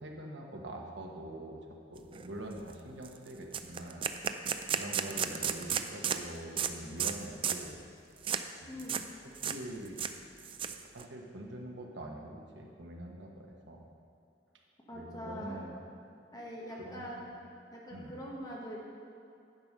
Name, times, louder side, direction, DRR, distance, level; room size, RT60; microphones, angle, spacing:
voice 1, 0.0-1.6 1.9-4.1 4.8-7.8 8.6-8.7 9.5-10.0 10.8-13.8 14.9-15.8 16.8-17.3 17.9-18.1, right 1 dB, 80° right, 1 dB, 1.3 m, -44 dB
sound 1, 2.1-2.3 2.6-2.7 3.0-3.2 3.5-6.2 6.6-6.7 7.0-7.2 7.4-7.7 8.2-8.4 8.8-9.1 9.4-9.6 9.9-11.0, right 7 dB, 30° right, 0.4 m, -33 dB
voice 2, 8.6-9.1 14.9-15.6 16.3-17.2 17.7-18.8, equal, 20° left, -3 dB, 1.3 m, -43 dB
10.5 x 5.2 x 6.7 m, 2.6 s
head